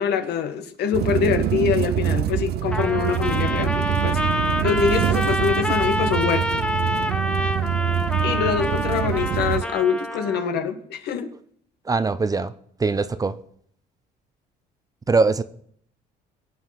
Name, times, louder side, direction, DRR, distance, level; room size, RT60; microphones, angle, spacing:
voice 1, 0.0-4.2 4.6-6.7 8.2-11.3, left 7 dB, 75° left, 8 dB, 1.7 m, -24 dB
sound 1, 0.9-9.6, right 11 dB, 70° right, 0.6 m, -25 dB
Trumpet, 2.7-10.5, left 1 dB, 5° left, 1.0 m, -27 dB
voice 2, 11.8-12.5 12.8-13.4 15.1-15.4, right 4 dB, 20° right, 13 dB, 0.7 m, -21 dB
22.5 x 7.9 x 5.9 m, 0.65 s
cardioid pair, 110°, 17 cm